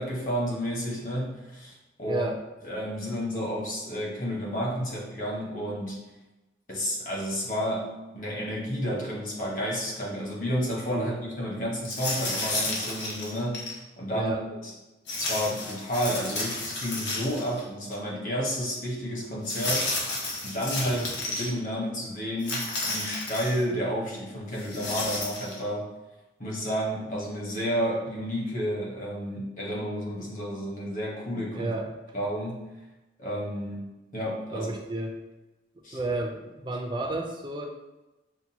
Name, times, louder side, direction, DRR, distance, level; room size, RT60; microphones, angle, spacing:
voice 1, 0.0-2.2 2.6-6.0 6.7-14.3 14.6-14.7 15.2-19.9 20.4-21.0 21.3-25.9 26.4-31.7 32.1-32.7 33.2-34.7 35.8-36.0, equal, 45° left, -4 dB, 1.1 m, -31 dB
voice 2, 2.1-2.4 10.9-11.2 14.1-14.4 20.8-21.1 31.5-31.9 34.5-35.2 35.9-37.7, right 2 dB, 25° right, 2 dB, 0.4 m, -31 dB
sound 1, 11.8-13.8 15.1-17.6 17.9-18.0 19.4-21.5 22.4-23.6 24.6-25.6, left 2 dB, 75° left, 0.9 m, -32 dB
5.8 x 2.2 x 2.8 m, 1.0 s
head